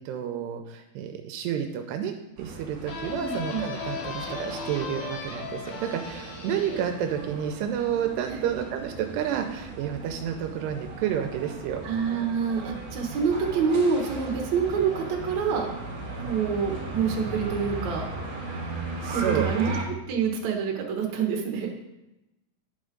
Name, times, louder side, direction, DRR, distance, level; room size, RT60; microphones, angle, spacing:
voice 1, 0.0-11.8 19.0-19.5, right 9 dB, 85° right, 5 dB, 2.6 m, -30 dB
sound 1, 2.4-19.8, right 3 dB, 50° right, 2.4 m, -37 dB
sound 2, 2.9-8.3, left 4 dB, 75° left, 1.6 m, -37 dB
voice 2, 3.1-3.7 11.8-15.7 16.2-18.0 19.1-19.8 20.1-21.7, right 6 dB, 65° right, 0 dB, 1.8 m, -27 dB
11.0 x 5.3 x 3.8 m, 0.94 s
omnidirectional pair, 5.0 m